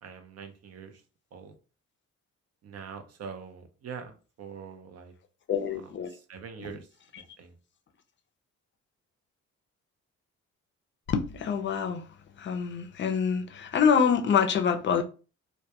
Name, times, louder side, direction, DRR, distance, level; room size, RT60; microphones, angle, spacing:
voice 1, 0.0-1.0 1.3-1.6 2.6-5.1 5.7-6.9 7.4-7.5, right 6 dB, 55° right, 0.6 m, -44 dB
voice 2, 5.5-6.1 6.6-6.7 11.1-12.1 12.4-15.0, left 6 dB, 40° left, 0.5 m, -26 dB
2.2 x 2.2 x 2.8 m
cardioid pair, 90°, 30 cm